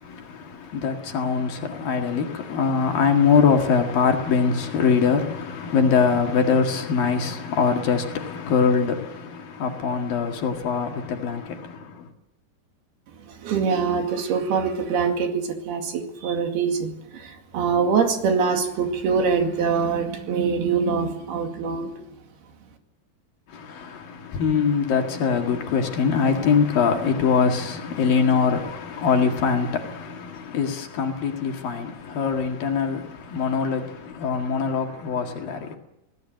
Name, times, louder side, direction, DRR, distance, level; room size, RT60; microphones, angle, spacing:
voice 1, 0.0-12.1 23.5-35.8, left 6 dB, 60° left, 3.5 m, -23 dB
voice 2, 13.4-21.9, right 5 dB, 70° right, 4.1 m, -24 dB
24.5 x 18.0 x 7.8 m
omnidirectional pair, 4.8 m